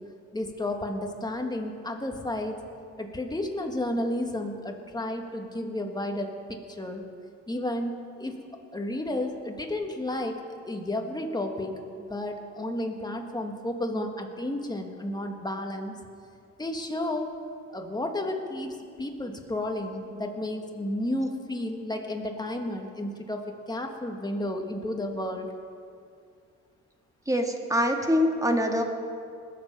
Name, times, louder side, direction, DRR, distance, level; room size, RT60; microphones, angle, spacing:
voice 1, 0.3-2.6 3.0-7.0 7.5-8.4 8.7-11.7 12.1-16.0 16.6-17.3 17.7-25.5, left 1 dB, 15° left, 3 dB, 1.7 m, -32 dB
voice 2, 27.3-28.8, equal, 10° right, 3 dB, 1.6 m, -24 dB
20.5 x 7.7 x 5.5 m, 2.3 s
cardioid pair, 90°, 30 cm